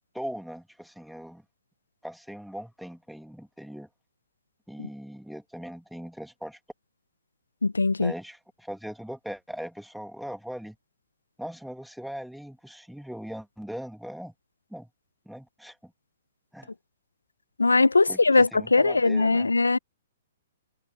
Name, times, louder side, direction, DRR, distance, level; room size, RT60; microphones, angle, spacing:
voice 1, 0.1-1.4 2.0-3.9 4.7-6.6 8.0-10.8 11.4-14.3 14.7-14.9 15.3-15.9 16.5-16.7 18.1-19.5, equal, ahead, 2.1 m, -40 dB
voice 2, 7.6-8.1 17.6-19.8, left 3 dB, 85° left, 0.9 m, -21 dB
figure-of-eight pair, 120°, 0 cm